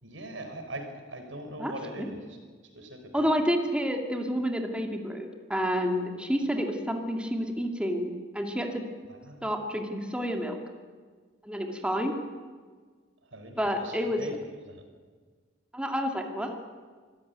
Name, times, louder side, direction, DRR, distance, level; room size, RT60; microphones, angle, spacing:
voice 1, 0.0-2.4 2.7-3.3 9.1-9.5 13.3-14.4 14.7-14.8, right 1 dB, 85° right, 6 dB, 4.4 m, -41 dB
voice 2, 1.6-2.1 3.1-8.8 9.4-10.6 11.4-12.1 13.6-14.2 15.7-16.6, equal, 5° right, 3 dB, 2.2 m, -29 dB
24.5 x 15.0 x 9.5 m, 1.5 s
head